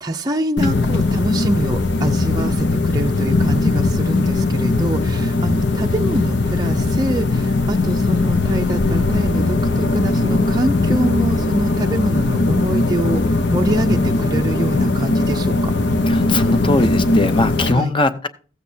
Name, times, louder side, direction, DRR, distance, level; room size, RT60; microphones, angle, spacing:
voice 1, 0.0-15.7 17.7-17.9, right 1 dB, 20° right, 2 dB, 0.5 m, -25 dB
sound 1, 0.6-17.7, left 2 dB, 65° left, 1.0 m, -19 dB
voice 2, 16.1-18.3, left 2 dB, 25° left, 10 dB, 0.7 m, -20 dB
15.0 x 8.3 x 2.8 m, 0.37 s
head